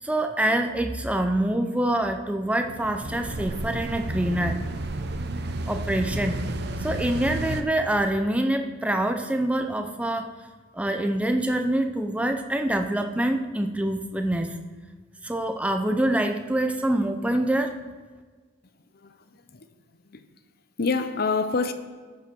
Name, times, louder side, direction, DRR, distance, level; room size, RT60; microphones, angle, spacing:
voice 1, 0.0-4.6 5.7-6.4 6.8-10.3 10.7-14.6 15.2-17.7, right 1 dB, 5° right, 0.6 m, -25 dB
sound 1, 2.6-7.6, right 2 dB, 50° right, 0.7 m, -31 dB
voice 2, 19.0-19.7 20.0-20.3 20.8-21.7, left 4 dB, 45° left, 0.7 m, -27 dB
14.0 x 5.7 x 6.1 m
head